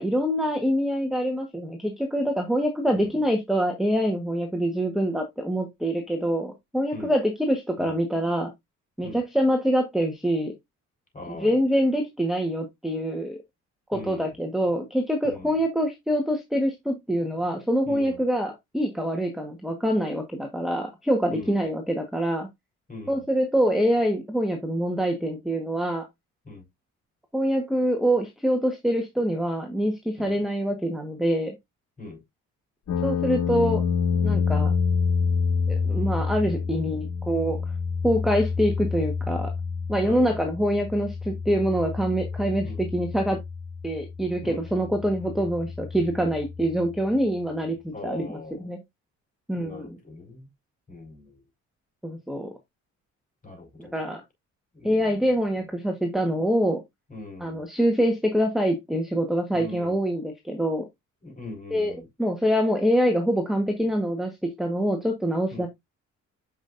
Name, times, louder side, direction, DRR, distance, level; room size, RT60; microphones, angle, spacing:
voice 1, 0.0-8.5 9.0-10.5 11.3-13.4 13.9-22.5 23.1-26.0 27.3-31.5 33.0-33.8 34.2-34.7 35.7-37.6 38.0-39.5 39.9-43.4 43.8-48.8 49.5-50.0 52.0-52.5 53.8-54.2 54.8-56.8 57.4-60.9 61.7-65.7, equal, ahead, 1.4 m, -25 dB
voice 2, 11.1-11.6 13.9-14.3 15.2-15.5 17.9-18.2 21.3-21.6 22.9-23.2 26.5-26.6 30.2-30.4 32.0-32.2 40.0-40.4 42.6-42.8 44.4-44.6 47.9-48.7 49.6-50.5 50.9-51.4 53.4-53.9 54.7-55.1 57.1-57.6 59.5-60.0 61.2-62.0 65.5-65.7, left 2 dB, 25° left, 5.2 m, -40 dB
sound 1, 32.9-46.9, left 5 dB, 60° left, 1.7 m, -28 dB
8.0 x 5.4 x 2.6 m
cardioid pair, 80°, 31 cm